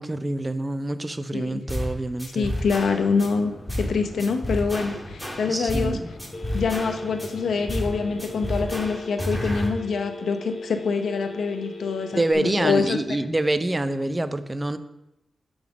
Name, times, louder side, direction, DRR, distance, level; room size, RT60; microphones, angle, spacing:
voice 1, 0.0-2.5 5.5-6.1 12.1-14.8, right 1 dB, 20° right, 11 dB, 0.4 m, -26 dB
sound 1, 1.7-1.9 2.2-3.3 3.7-3.9 4.2-5.9 6.2-7.3 7.7-7.9 8.2-9.7, equal, ahead, 1.5 m, -30 dB
voice 2, 2.3-6.0 6.5-13.0, left 5 dB, 85° left, 7 dB, 0.6 m, -25 dB
sound 2, 3.0-8.9, left 1 dB, 45° left, 3.0 m, -43 dB
Telephone, 6.3-12.3, left 1 dB, 30° left, 0.9 m, -39 dB
7.2 x 4.0 x 5.9 m, 0.92 s
wide cardioid pair, 100°, 0 cm